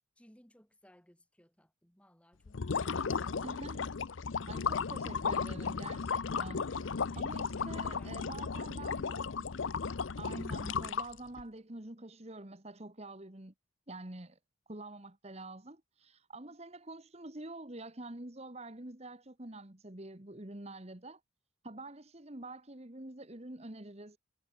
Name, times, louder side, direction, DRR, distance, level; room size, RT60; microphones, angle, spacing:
voice 1, 0.2-3.6 6.7-9.2, equal, 5° left, 2.8 m, -62 dB
sound 1, 2.5-11.4, left 5 dB, 75° left, 0.7 m, -35 dB
voice 2, 3.4-3.9 4.5-6.7 7.2-9.3 10.2-13.5 13.9-14.4 14.7-21.2 21.6-24.2, right 2 dB, 30° right, 1.7 m, -47 dB
head